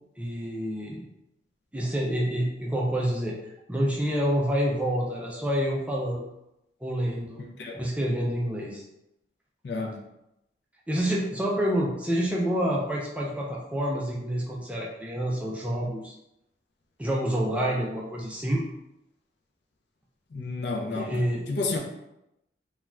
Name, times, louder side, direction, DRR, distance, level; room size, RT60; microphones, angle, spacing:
voice 1, 0.2-1.0 1.7-3.4 3.7-6.2 6.8-7.4 7.7-8.8 10.9-16.1 17.0-18.6 20.9-21.4, equal, 5° right, -4 dB, 0.3 m, -28 dB
voice 2, 7.4-7.8 9.6-10.0 20.3-21.8, left 3 dB, 60° left, 1 dB, 0.4 m, -31 dB
2.4 x 2.2 x 3.1 m, 0.87 s
head